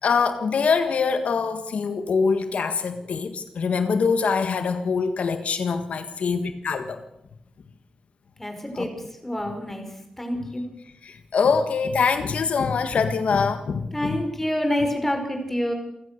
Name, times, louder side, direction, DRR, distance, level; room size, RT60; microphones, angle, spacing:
voice 1, 0.0-7.0 8.7-8.9 10.4-10.5 11.0-14.2, left 5 dB, 85° left, 9 dB, 1.6 m, -24 dB
voice 2, 8.4-8.9 9.2-9.9 10.2-10.6 13.9-15.7, left 1 dB, 10° left, 4 dB, 5.0 m, -27 dB
28.0 x 16.0 x 6.7 m, 0.84 s
wide cardioid pair, 125°, 2 cm